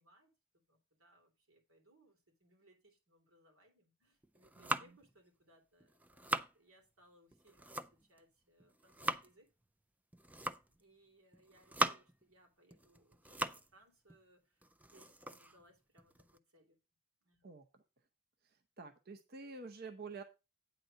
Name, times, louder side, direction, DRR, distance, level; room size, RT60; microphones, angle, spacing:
voice 1, 0.0-9.5 10.8-16.8 17.2-17.4, right 1 dB, 85° right, 3.2 m, -68 dB
sound 1, 4.2-5.1 5.8-6.5 7.3-8.2 8.6-9.3 10.1-10.8 11.3-12.2 12.7-13.7 14.1-14.2 14.6-16.4, right 1 dB, 5° right, 0.4 m, -40 dB
voice 2, 4.6-5.0 17.4-17.6 18.4-20.2, right 4 dB, 45° right, 0.7 m, -49 dB
9.0 x 4.2 x 6.4 m
head